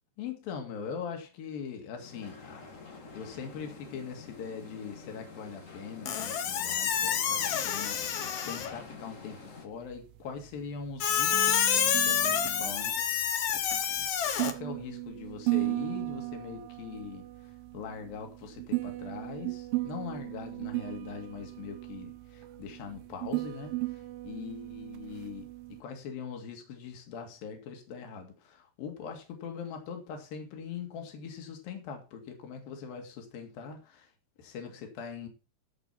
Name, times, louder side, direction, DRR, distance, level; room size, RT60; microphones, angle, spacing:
voice 1, 0.2-2.7 2.9-13.3 13.5-14.1 14.4-25.5 25.8-34.1 34.4-35.3, left 6 dB, 65° left, 3.8 m, -42 dB
sound 1, 2.0-9.7, left 3 dB, 50° left, 0.9 m, -48 dB
Squeak, 6.1-8.8 11.0-14.5, left 8 dB, 80° left, 1.4 m, -28 dB
sound 2, 9.7-25.8, right 22 dB, 75° right, 2.4 m, -36 dB
14.5 x 5.1 x 5.9 m
omnidirectional pair, 4.6 m